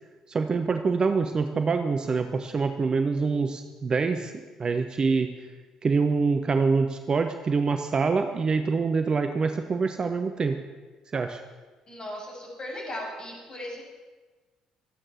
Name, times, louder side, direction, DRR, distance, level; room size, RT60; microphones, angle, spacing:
voice 1, 0.3-4.3 4.6-5.3 5.8-10.6 11.1-11.4, right 4 dB, 35° right, 7 dB, 1.0 m, -25 dB
voice 2, 11.9-13.8, left 1 dB, 35° left, -2 dB, 6.9 m, -37 dB
24.0 x 9.0 x 6.1 m, 1.3 s
figure-of-eight pair, 50°, 2 cm